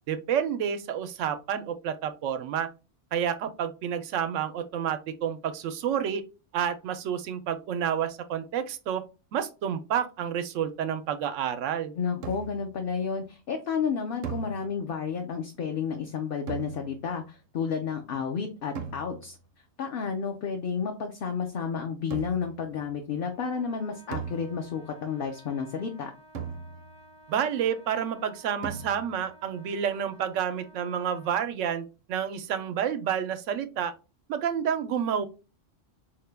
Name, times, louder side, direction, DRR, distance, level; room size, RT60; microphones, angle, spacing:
voice 1, 0.1-2.7 3.1-6.2 6.5-9.0 9.3-11.9 27.3-33.9 34.3-35.3, right 8 dB, 90° right, 11 dB, 0.9 m, -29 dB
voice 2, 12.0-19.4 19.8-26.1, left 6 dB, 60° left, 4 dB, 0.7 m, -31 dB
sound 1, 12.2-12.8 14.2-15.1 16.5-17.2 18.8-19.5 22.1-22.7 24.1-25.0 26.3-27.1 28.6-29.3, right 6 dB, 55° right, 0.7 m, -39 dB
Trumpet, 23.3-31.4, equal, 80° left, 2.3 m, -54 dB
4.6 x 2.2 x 3.3 m, 0.31 s
omnidirectional pair, 1.2 m